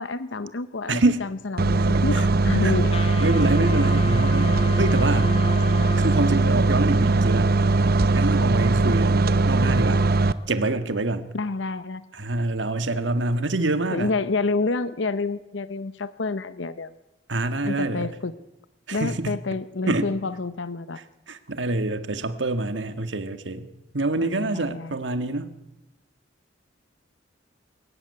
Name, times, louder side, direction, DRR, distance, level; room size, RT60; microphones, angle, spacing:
voice 1, 0.0-2.9 11.3-12.0 13.9-16.9 17.6-18.3 18.9-21.0 24.2-24.9, left 3 dB, 75° left, 14 dB, 0.8 m, -28 dB
voice 2, 0.9-1.3 1.9-2.2 2.6-2.7 3.2-5.4 6.0-7.5 8.1-10.0 10.5-11.3 12.1-14.1 17.3-18.1 18.9-19.4 19.9-20.1 21.3-23.7 23.9-25.5, right 2 dB, 70° right, 10 dB, 1.7 m, -26 dB
sound 1, 1.6-10.3, right 3 dB, 55° right, 0.9 m, -20 dB
Wind instrument woodwind instrument, 2.9-6.8, left 2 dB, 35° left, 2.0 m, -33 dB
23.5 x 14.5 x 9.5 m, 0.95 s
head